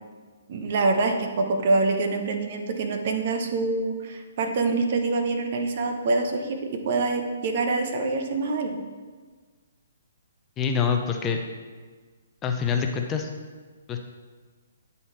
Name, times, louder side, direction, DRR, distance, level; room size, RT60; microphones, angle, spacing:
voice 1, 0.5-8.8, right 3 dB, 50° right, 5 dB, 0.9 m, -25 dB
voice 2, 10.6-11.4 12.4-13.3 13.9-14.0, left 6 dB, 20° left, 3 dB, 0.6 m, -25 dB
9.1 x 4.1 x 4.3 m, 1.4 s
figure-of-eight pair, 130°, 0 cm